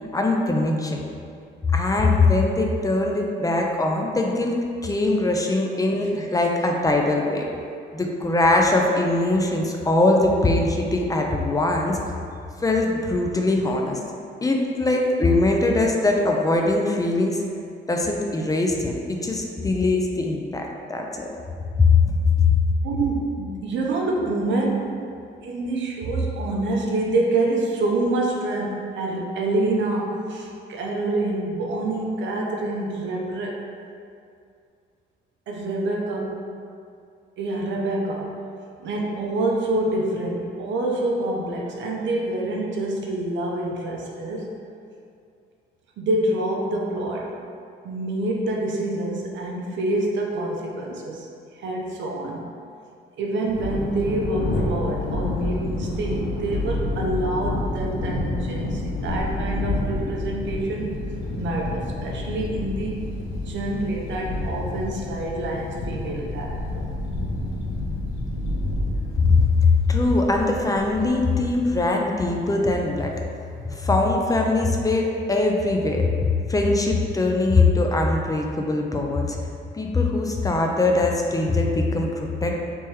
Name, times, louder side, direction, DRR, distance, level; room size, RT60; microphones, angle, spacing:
voice 1, 0.1-1.0 1.7-4.5 4.8-7.5 7.9-12.0 12.6-14.0 14.4-17.4 17.9-21.3 21.8-22.6 69.3-73.2 73.7-79.4 79.7-82.7, left 3 dB, 20° left, 1 dB, 0.4 m, -21 dB
voice 2, 22.8-25.0 25.4-33.6 35.5-36.5 37.4-38.4 38.8-44.5 46.0-47.3 47.8-51.3 51.5-52.5 53.2-61.0 61.3-63.0 63.4-66.8, right 2 dB, 65° right, -1 dB, 0.6 m, -26 dB
Thunder, 53.5-71.9, left 2 dB, 90° left, 0.6 m, -29 dB
3.4 x 2.9 x 3.2 m, 2.4 s
cardioid pair, 90°, 20 cm